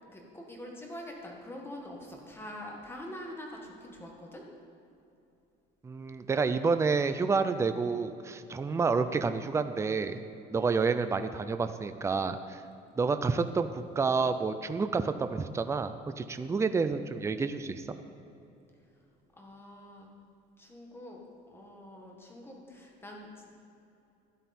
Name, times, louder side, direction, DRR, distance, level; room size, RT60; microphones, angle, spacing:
voice 1, 0.1-4.5 19.3-20.1 20.6-21.2 21.5-23.5, left 1 dB, 10° left, 0 dB, 1.6 m, -45 dB
voice 2, 5.8-10.2 10.5-12.6 13.0-18.0, right 4 dB, 15° right, 10 dB, 0.4 m, -29 dB
13.0 x 10.0 x 4.3 m, 2.8 s
cardioid pair, 150°, 20 cm